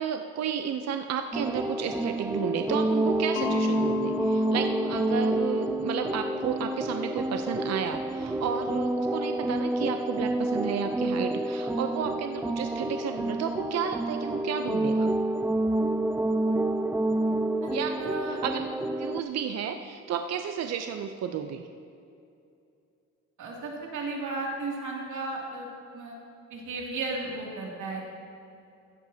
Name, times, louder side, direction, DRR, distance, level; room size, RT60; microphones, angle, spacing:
voice 1, 0.0-15.1 17.7-18.0 18.2-18.7 19.0-21.6, right 7 dB, 60° right, 7 dB, 0.6 m, -32 dB
sound 1, 1.3-19.2, right 1 dB, 5° right, 0.4 m, -28 dB
Mallet percussion, 3.4-8.1, left 17 dB, 90° left, 0.6 m, -37 dB
voice 2, 18.0-18.4 23.4-25.7 25.9-26.2 26.5-28.1, right 3 dB, 75° right, -2 dB, 2.5 m, -34 dB
15.0 x 10.5 x 2.8 m, 2.6 s
cardioid pair, 90°, 30 cm